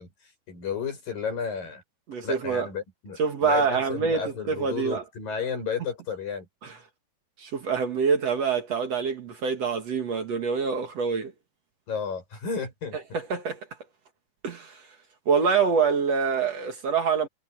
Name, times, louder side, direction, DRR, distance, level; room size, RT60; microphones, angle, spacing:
voice 1, 0.0-1.8 2.2-6.5 11.9-13.0, left 6 dB, 75° left, 9.7 m, -33 dB
voice 2, 2.1-2.7 3.2-4.2 4.5-5.0 7.4-11.3 13.3-13.6 14.4-14.7 15.3-17.3, right 5 dB, 50° right, 2.6 m, -25 dB
omnidirectional pair, 4.0 m